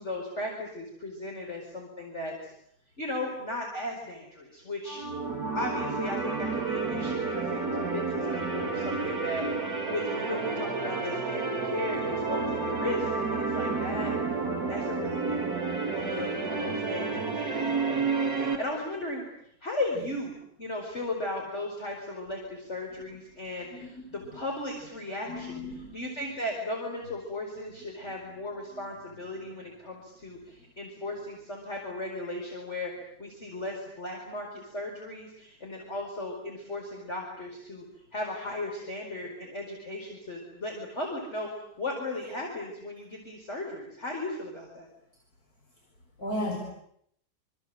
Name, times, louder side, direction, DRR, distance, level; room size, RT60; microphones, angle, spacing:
voice 1, 0.0-2.5 3.0-5.0 5.5-9.5 9.9-14.1 14.7-15.6 15.9-19.2 19.6-25.6 25.9-37.8 38.1-44.9, left 2 dB, 35° left, 0 dB, 5.1 m, -36 dB
sound 1, 4.9-18.6, right 4 dB, 55° right, 4.0 m, -30 dB
voice 2, 23.7-24.3 25.3-26.0 46.2-46.6, left 1 dB, 50° left, 1 dB, 5.0 m, -35 dB
27.0 x 26.5 x 7.8 m, 0.72 s
omnidirectional pair, 2.0 m